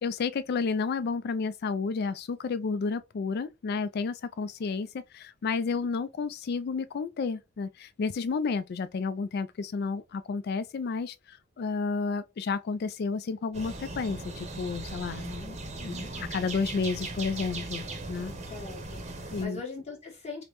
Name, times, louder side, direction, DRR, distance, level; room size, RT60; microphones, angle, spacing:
voice 1, 0.0-4.9 5.1-18.3 19.3-19.6, left 4 dB, 50° left, 0.3 m, -31 dB
sound 1, 13.5-19.5, right 2 dB, 35° right, 0.8 m, -38 dB
voice 2, 18.5-20.4, left 4 dB, 35° left, 1.4 m, -41 dB
5.0 x 2.1 x 3.0 m
head